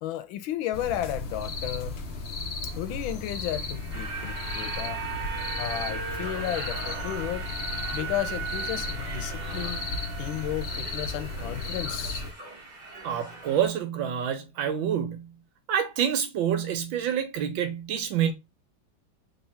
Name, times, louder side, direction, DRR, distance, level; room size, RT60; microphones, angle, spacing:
voice 1, 0.0-2.0 2.7-5.0 5.6-7.5 7.9-9.9 10.2-12.2, left 12 dB, 90° left, 1.4 m, -33 dB
sound 1, 0.7-12.3, left 3 dB, 55° left, 0.7 m, -35 dB
sound 2, 3.3-11.6 11.9-12.1, right 7 dB, 70° right, 1.3 m, -39 dB
sound 3, 3.9-13.7, right 2 dB, 30° right, 0.9 m, -41 dB
voice 2, 13.0-15.3 15.7-18.3, right 9 dB, 85° right, 1.6 m, -27 dB
3.6 x 2.9 x 4.3 m
omnidirectional pair, 2.1 m